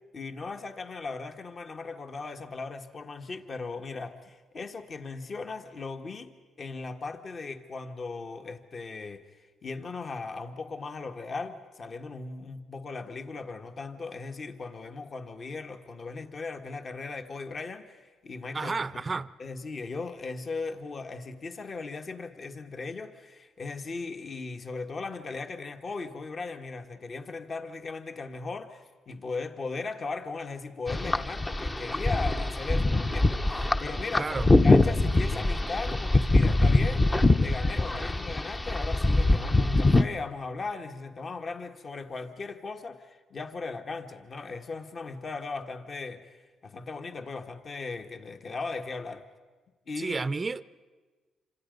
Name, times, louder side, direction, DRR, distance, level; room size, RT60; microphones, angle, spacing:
voice 1, 0.1-18.7 19.4-46.4 46.6-49.2 49.9-50.3, left 4 dB, 40° left, 1.6 m, -38 dB
voice 2, 18.5-19.3 34.2-34.5 50.0-50.7, right 4 dB, 30° right, 0.6 m, -31 dB
sound 1, 30.9-40.0, left 2 dB, 20° left, 0.9 m, -23 dB
27.5 x 26.0 x 5.3 m
cardioid pair, 90°, 0 cm